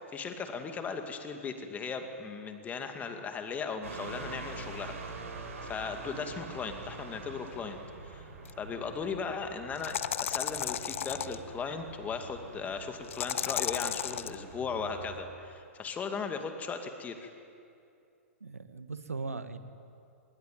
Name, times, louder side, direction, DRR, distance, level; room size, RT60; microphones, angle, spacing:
voice 1, 0.1-7.8 8.0-8.3 8.6-17.3, left 5 dB, 20° left, 6 dB, 2.4 m, -37 dB
sound 1, 3.8-15.2, right 3 dB, 70° right, 6.5 m, -45 dB
sound 2, 8.4-8.5 9.7-11.4 13.1-14.3, left 10 dB, 65° left, 0.9 m, -33 dB
voice 2, 18.4-19.6, right 4 dB, 85° right, 10 dB, 1.7 m, -38 dB
27.0 x 21.5 x 9.4 m, 2.5 s
figure-of-eight pair, 110°, 8 cm